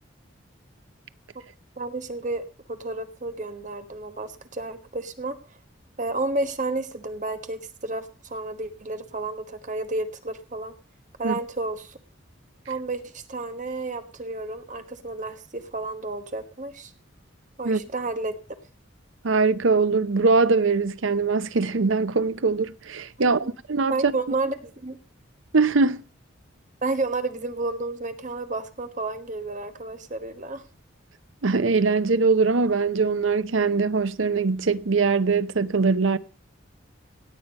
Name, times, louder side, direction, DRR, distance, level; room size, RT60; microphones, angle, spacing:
voice 1, 1.8-2.4 2.7-5.4 6.0-10.7 11.2-12.0 12.7-16.9 17.6-18.3 23.4-23.5 23.9-25.0 26.8-30.6, right 2 dB, 40° right, 1.2 m, -31 dB
voice 2, 19.2-24.1 25.5-26.0 31.4-36.2, right 4 dB, 75° right, 0.7 m, -22 dB
17.0 x 8.8 x 5.3 m
head